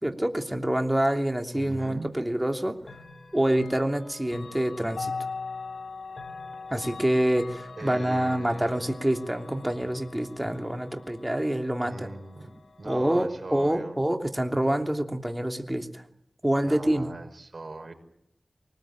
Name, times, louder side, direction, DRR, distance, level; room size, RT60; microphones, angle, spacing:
voice 1, 0.0-2.8 3.3-5.1 6.7-12.1 12.8-16.0 16.4-17.1, right 1 dB, 15° right, 4 dB, 3.0 m, -26 dB
voice 2, 1.5-2.1 7.8-8.9 11.8-14.0 16.6-17.9, right 2 dB, 55° right, 4 dB, 5.8 m, -40 dB
Chime / Clock, 2.8-13.7, left 4 dB, 85° left, 3.4 m, -41 dB
24.5 x 20.0 x 9.0 m, 0.72 s
wide cardioid pair, 50°, 0 cm